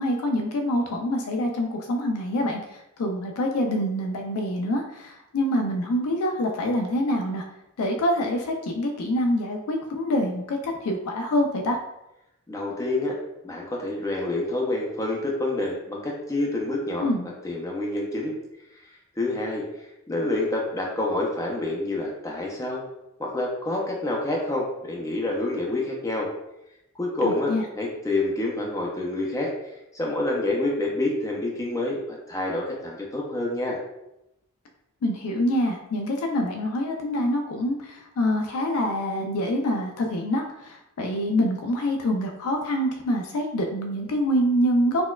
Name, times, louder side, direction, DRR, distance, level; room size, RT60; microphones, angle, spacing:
voice 1, 0.0-2.6 3.0-7.4 7.8-11.8 17.0-17.3 27.2-27.6 35.0-45.0, equal, 85° left, 2 dB, 0.4 m, -25 dB
voice 2, 12.5-13.1 13.4-17.1 17.4-18.3 19.2-19.6 20.1-22.8 23.2-26.3 27.0-29.5 29.9-33.8, left 2 dB, 15° left, -2 dB, 0.4 m, -27 dB
4.1 x 2.2 x 2.2 m, 0.87 s
head